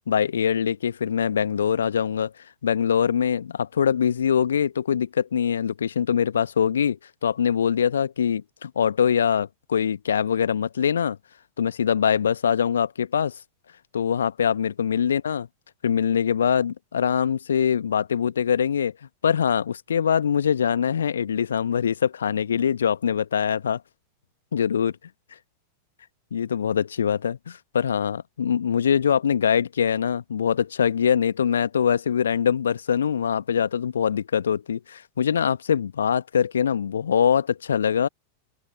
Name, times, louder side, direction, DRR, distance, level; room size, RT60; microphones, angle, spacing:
voice 1, 0.1-2.3 2.6-11.2 11.6-13.3 13.9-15.5 15.8-18.9 19.2-23.8 24.5-24.9 26.3-38.1, left 8 dB, 70° left, 1.4 m, -23 dB
open air
figure-of-eight pair, 90°, 0 cm